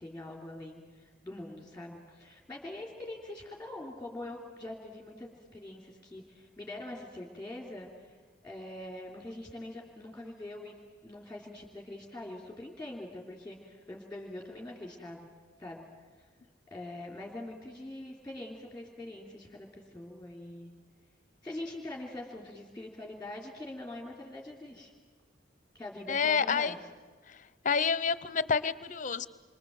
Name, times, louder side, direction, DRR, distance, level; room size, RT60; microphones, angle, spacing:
voice 1, 0.0-10.8 11.0-15.3 15.6-15.8 16.2-16.3 16.7-20.7 21.4-24.9 25.7-26.8, left 1 dB, 5° left, 0 dB, 3.1 m, -43 dB
voice 2, 26.1-26.7 27.3-27.4 27.6-29.3, left 6 dB, 40° left, 16 dB, 0.7 m, -28 dB
27.5 x 24.0 x 7.7 m, 1.4 s
head